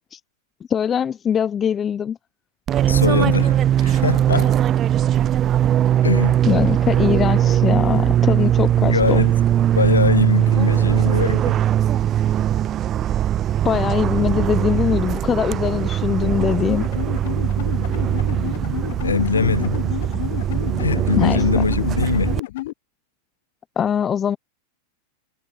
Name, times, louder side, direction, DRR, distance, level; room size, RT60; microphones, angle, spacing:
voice 1, 0.7-2.2 6.4-9.2 13.6-16.9 21.2-21.6 23.8-24.4, left 8 dB, 25° left, 0.7 m, -22 dB
Fixed-wing aircraft airplane, 2.7-22.4, right 11 dB, 35° right, 0.4 m, -20 dB
voice 2, 2.9-4.6 6.0-6.4 8.8-9.3 9.8-11.6 19.0-19.8 20.8-22.4, left 5 dB, 85° left, 0.4 m, -22 dB
sound 1, 16.4-22.7, left 17 dB, 60° left, 0.9 m, -31 dB
hypercardioid pair, 95°, 0 cm